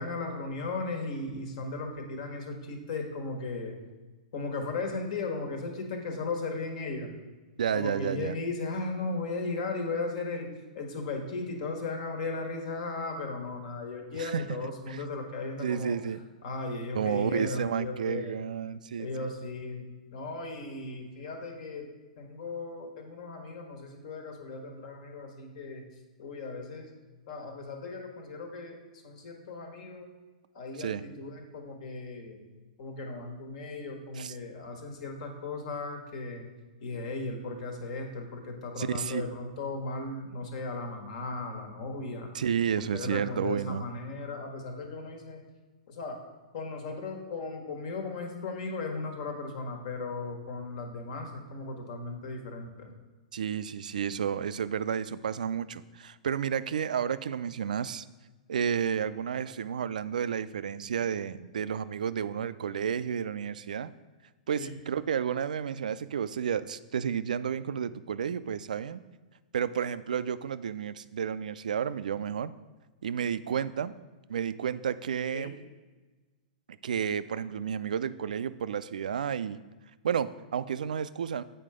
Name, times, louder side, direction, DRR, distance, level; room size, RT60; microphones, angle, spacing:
voice 1, 0.0-3.8 4.3-7.1 7.7-10.5 10.7-16.0 16.4-18.4 19.0-19.9 20.1-21.9 22.2-25.8 26.2-26.9 27.3-28.8 29.0-30.1 30.5-32.4 32.8-36.5 36.8-42.3 42.9-45.4 45.9-46.2 46.5-52.9 64.6-64.7 75.3-75.5, left 3 dB, 60° left, 3 dB, 1.5 m, -36 dB
voice 2, 7.6-8.3 14.1-14.4 14.9-15.0 15.6-16.2 16.9-19.3 30.8-31.0 34.2-34.3 38.8-39.3 42.3-43.8 53.3-58.0 58.5-63.9 64.5-69.0 69.5-72.5 73.0-73.9 74.3-75.5 76.8-79.6 80.0-81.4, right 8 dB, 85° right, 15 dB, 0.3 m, -31 dB
7.7 x 4.6 x 4.9 m, 1.3 s
hypercardioid pair, 125°, 4 cm